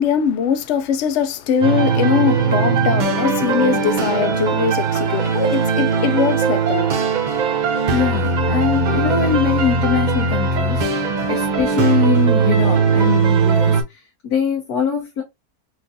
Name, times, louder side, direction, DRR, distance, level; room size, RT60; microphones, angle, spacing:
voice 1, 0.0-6.9, left 7 dB, 65° left, 0.7 m, -21 dB
sound 1, 1.6-13.8, right 5 dB, 60° right, 0.5 m, -19 dB
voice 2, 7.9-13.8 14.2-15.2, left 7 dB, 85° left, 1.4 m, -22 dB
4.5 x 2.5 x 2.6 m
omnidirectional pair, 1.6 m